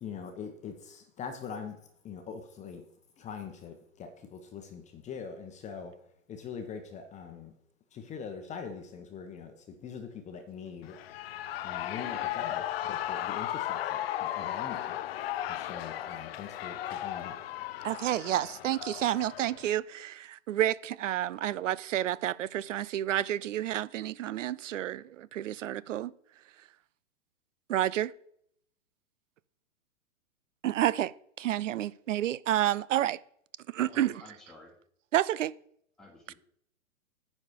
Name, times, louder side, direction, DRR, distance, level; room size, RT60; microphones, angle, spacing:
voice 1, 0.0-2.9 3.2-7.5 7.9-11.0 11.6-15.0 15.5-17.4, left 6 dB, 20° left, 0.9 m, -43 dB
Shout / Cheering, 10.8-19.8, left 12 dB, 50° left, 0.6 m, -36 dB
voice 2, 17.8-26.1 27.7-28.1 30.6-33.2 33.7-34.1 35.1-35.5, right 12 dB, 70° right, 0.5 m, -30 dB
voice 3, 33.7-34.8 36.0-36.3, left 2 dB, ahead, 1.3 m, -52 dB
9.6 x 4.2 x 6.4 m
hypercardioid pair, 115°, 39 cm